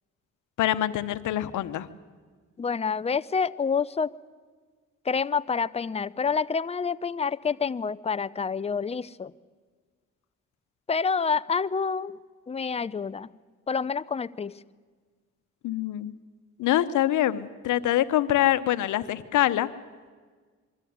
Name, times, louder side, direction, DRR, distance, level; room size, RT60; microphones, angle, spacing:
voice 1, 0.6-1.9 15.6-16.1 16.6-19.7, left 13 dB, 80° left, 13 dB, 1.0 m, -25 dB
voice 2, 2.6-4.1 5.1-9.3 10.9-12.2 12.5-13.3 13.7-14.5, left 5 dB, 20° left, 16 dB, 0.5 m, -28 dB
23.0 x 13.5 x 9.4 m, 1.5 s
cardioid pair, 90°, 30 cm